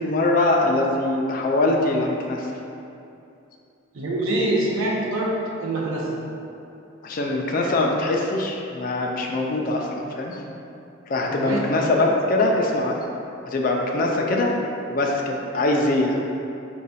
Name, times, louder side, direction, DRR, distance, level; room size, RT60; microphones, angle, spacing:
voice 1, 0.0-2.5 7.0-10.4 11.1-13.0 13.5-14.6 14.9-16.2, left 2 dB, 40° left, 0 dB, 0.3 m, -22 dB
voice 2, 3.9-6.2 11.3-11.6, right 1 dB, 75° right, -4 dB, 0.6 m, -25 dB
4.9 x 2.3 x 4.1 m, 2.7 s
head